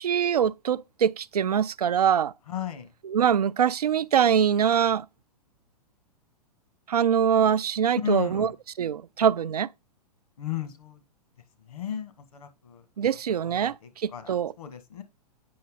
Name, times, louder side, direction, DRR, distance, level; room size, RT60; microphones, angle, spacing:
voice 1, 0.0-2.3 3.0-5.1 6.9-8.5 8.8-9.7 13.0-14.5, right 8 dB, 75° right, 0.4 m, -23 dB
voice 2, 2.5-2.9 8.0-8.5 10.4-11.0 11.7-12.8 13.4-13.7 14.1-14.3 14.6-15.0, left 10 dB, 65° left, 2.0 m, -34 dB
8.6 x 6.1 x 3.8 m
figure-of-eight pair, 105°, 20 cm